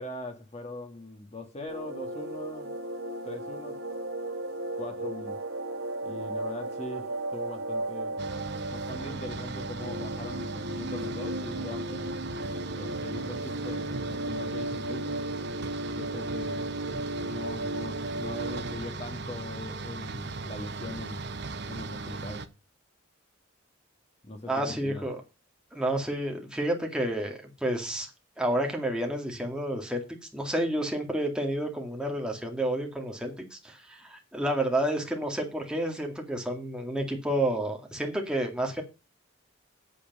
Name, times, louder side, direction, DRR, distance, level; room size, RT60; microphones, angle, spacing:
voice 1, 0.0-2.7 3.2-3.8 4.7-5.4 6.0-8.3 8.7-12.1 12.8-15.2 16.0-16.7 17.2-21.2 21.7-22.4 24.2-25.1, left 2 dB, 30° left, 1.9 m, -41 dB
sound 1, 1.7-18.8, right 1 dB, 85° right, 1.6 m, -35 dB
sound 2, 8.2-22.5, right 3 dB, 55° right, 1.1 m, -38 dB
voice 2, 24.5-25.2 25.7-28.1 28.4-30.0 30.3-38.8, right 1 dB, 5° right, 2.2 m, -30 dB
8.9 x 8.5 x 5.4 m
head